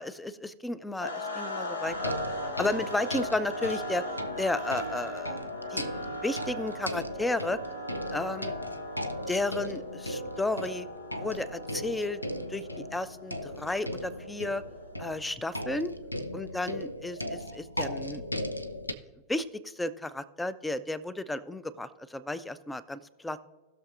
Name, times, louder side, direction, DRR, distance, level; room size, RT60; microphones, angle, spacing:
voice 1, 0.0-2.2 2.6-4.0 4.4-7.6 8.1-8.5 9.3-10.9 11.2-12.2 12.5-14.6 15.0-15.9 16.3-18.2 19.3-23.4, left 2 dB, 5° left, 17 dB, 0.5 m, -33 dB
sound 1, 1.0-15.1, left 1 dB, 70° left, 0.9 m, -39 dB
sound 2, 1.8-18.9, left 1 dB, 85° left, 0.5 m, -37 dB
19.0 x 6.5 x 2.5 m, 1.3 s
figure-of-eight pair, 90°, 0 cm